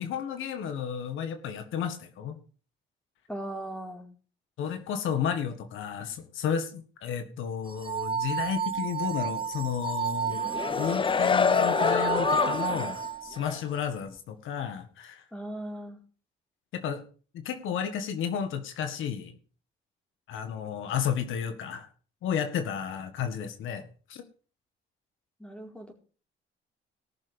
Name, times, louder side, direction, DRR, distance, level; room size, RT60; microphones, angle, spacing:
voice 1, 0.0-2.4 4.6-10.5 10.8-15.2 16.7-17.0 17.3-19.3 20.3-21.9 22.2-24.2, left 8 dB, 85° left, 8 dB, 1.8 m, -32 dB
voice 2, 3.3-4.1 15.3-16.0 25.4-25.9, right 1 dB, 5° left, 2 dB, 4.4 m, -38 dB
sound 1, 7.7-13.5, right 8 dB, 25° right, 1.4 m, -32 dB
sound 2, 10.3-13.0 13.4-13.6, left 5 dB, 25° left, 0.5 m, -26 dB
19.0 x 6.8 x 5.2 m, 0.40 s
cardioid pair, 90°, 20 cm